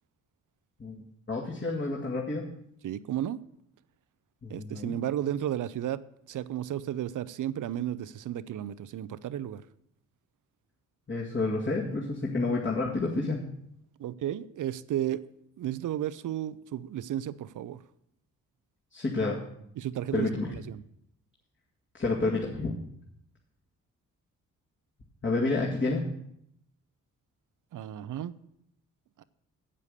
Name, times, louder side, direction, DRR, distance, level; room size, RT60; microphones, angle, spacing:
voice 1, 0.8-2.5 4.4-5.0 11.1-13.4 18.9-19.4 20.1-20.6 21.9-22.7 25.2-26.1, left 3 dB, 30° left, 2.2 m, -29 dB
voice 2, 2.8-3.4 4.5-6.0 6.3-9.6 14.0-15.2 15.6-17.8 19.8-20.8 27.7-28.4 29.2-29.3, right 11 dB, 55° right, 0.6 m, -33 dB
8.1 x 7.5 x 6.6 m
hypercardioid pair, 40°, 37 cm